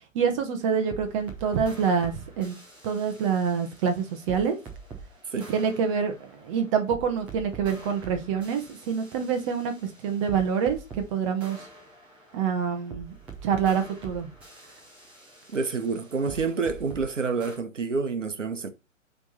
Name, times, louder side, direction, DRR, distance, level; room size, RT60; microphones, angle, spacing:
voice 1, 0.1-2.6 2.8-4.6 5.5-11.6 12.3-13.1 13.4-14.3, right 7 dB, 25° right, 1.1 m, -26 dB
sound 1, 0.6-5.1 5.4-11.1 11.4-17.1 17.4-17.6, right 4 dB, 5° right, 0.5 m, -45 dB
voice 2, 15.5-18.7, right 4 dB, 65° right, 1.1 m, -28 dB
8.1 x 3.5 x 4.1 m
figure-of-eight pair, 125°, 39 cm